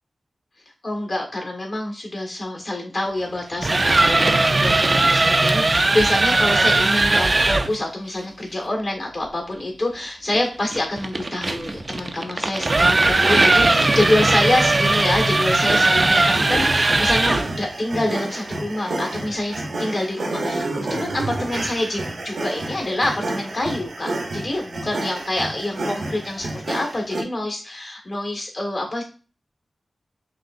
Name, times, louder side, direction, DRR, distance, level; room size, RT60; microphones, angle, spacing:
voice 1, 0.8-29.0, left 1 dB, 60° left, 0 dB, 1.6 m, -26 dB
sound 1, 3.4-7.7 10.3-17.5, right 2 dB, 45° right, 0.4 m, -19 dB
sound 2, 15.5-27.2, right 2 dB, 85° right, 0.9 m, -30 dB
6.0 x 2.5 x 2.6 m, 0.37 s
cardioid pair, 55°, 0 cm